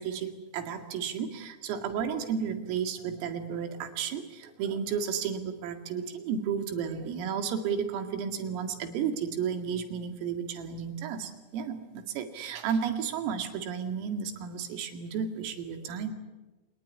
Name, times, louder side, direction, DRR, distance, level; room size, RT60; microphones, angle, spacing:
voice 1, 0.0-16.1, right 7 dB, 85° right, 6 dB, 4.8 m, -33 dB
28.0 x 19.5 x 9.9 m, 1.2 s
omnidirectional pair, 5.8 m